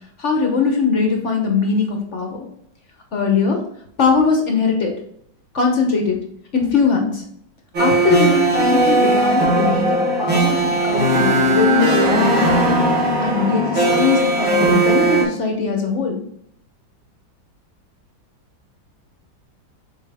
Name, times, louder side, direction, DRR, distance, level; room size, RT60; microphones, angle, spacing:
voice 1, 0.2-2.5 3.1-3.6 4.0-4.9 5.5-6.2 6.5-7.2 7.8-12.6 13.2-16.2, left 5 dB, 45° left, 2 dB, 1.0 m, -20 dB
sound 1, 7.7-15.2, right 2 dB, 85° right, 3.0 m, -17 dB
7.0 x 4.3 x 3.5 m, 0.70 s
omnidirectional pair, 2.2 m